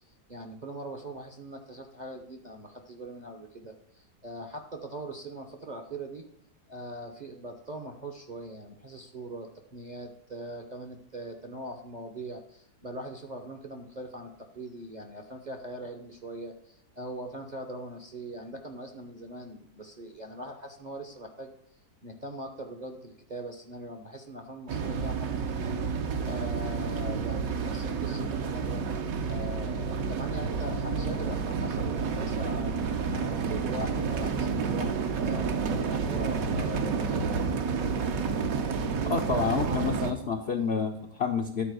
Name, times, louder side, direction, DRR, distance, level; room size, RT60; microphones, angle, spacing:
voice 1, 0.3-6.2 6.7-21.5 22.0-25.3 25.6-25.8 26.2-28.8 29.3-32.7 33.1-37.4, right 1 dB, 35° right, 3 dB, 0.8 m, -41 dB
sound 1, 24.7-40.1, right 5 dB, 60° right, 1.2 m, -30 dB
voice 2, 39.0-41.7, left 5 dB, 55° left, 3 dB, 0.7 m, -29 dB
10.5 x 4.4 x 6.3 m, 0.74 s
omnidirectional pair, 1.8 m